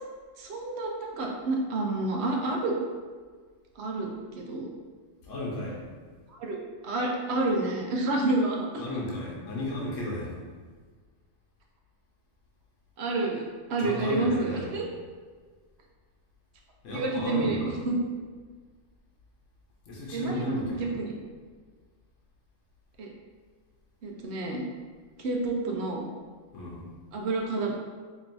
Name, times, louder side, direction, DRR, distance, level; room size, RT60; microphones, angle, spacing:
voice 1, 0.4-2.8 3.8-4.7 6.4-6.6 6.8-8.9 13.0-13.4 13.7-14.9 16.9-18.0 20.1-21.1 23.0-23.1 24.0-24.6 25.2-26.0 27.1-27.7, right 2 dB, 65° right, 0 dB, 0.8 m, -29 dB
voice 2, 5.2-5.8 8.8-10.4 13.8-14.7 16.8-17.8 19.9-20.9 26.5-26.9, left 1 dB, 70° left, -4 dB, 1.1 m, -34 dB
4.4 x 3.0 x 2.6 m, 1.5 s
omnidirectional pair, 1.3 m